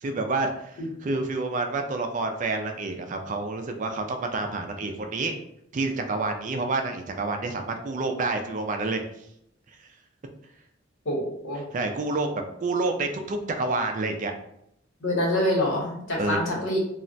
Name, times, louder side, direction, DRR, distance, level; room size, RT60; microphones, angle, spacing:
voice 1, 0.0-5.3 5.7-9.0 11.7-14.3 16.2-16.4, right 3 dB, 40° right, 5 dB, 0.4 m, -28 dB
voice 2, 11.0-11.6 15.0-16.8, left 1 dB, 85° left, -3 dB, 1.1 m, -26 dB
2.4 x 2.1 x 3.8 m, 0.76 s
head